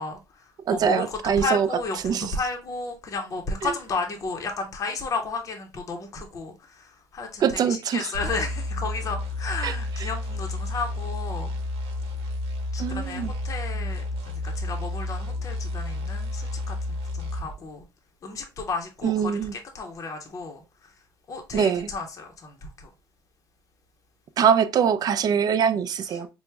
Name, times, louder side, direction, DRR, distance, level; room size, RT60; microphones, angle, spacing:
voice 1, 0.0-11.5 12.7-14.0 14.4-16.8 17.1-17.8 18.2-20.9 21.3-22.9, left 3 dB, 35° left, 0.6 m, -33 dB
voice 2, 0.7-1.7 2.0-2.3 3.6-3.7 7.4-8.1 9.6-10.1 12.8-13.3 19.0-19.5 21.5-21.9 24.4-26.3, right 7 dB, 45° right, 0.4 m, -23 dB
sound 1, 8.1-17.6, left 2 dB, 80° right, 0.8 m, -31 dB
4.4 x 2.0 x 3.2 m
cardioid pair, 135°, 9 cm